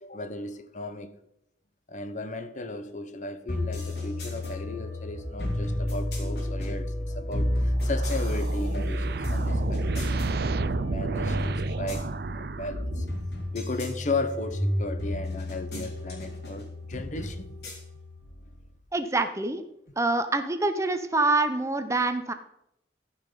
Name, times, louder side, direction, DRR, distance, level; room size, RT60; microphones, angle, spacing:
voice 1, 0.0-1.2 1.9-13.1 13.5-17.5, left 2 dB, 45° left, 0.8 m, -36 dB
sound 1, 3.5-18.7, left 1 dB, 70° left, 3.5 m, -31 dB
sound 2, 7.8-13.2, right 4 dB, 60° right, 0.5 m, -33 dB
voice 2, 18.9-19.6 20.0-22.3, right 2 dB, 15° right, 0.6 m, -26 dB
13.5 x 5.8 x 5.3 m
head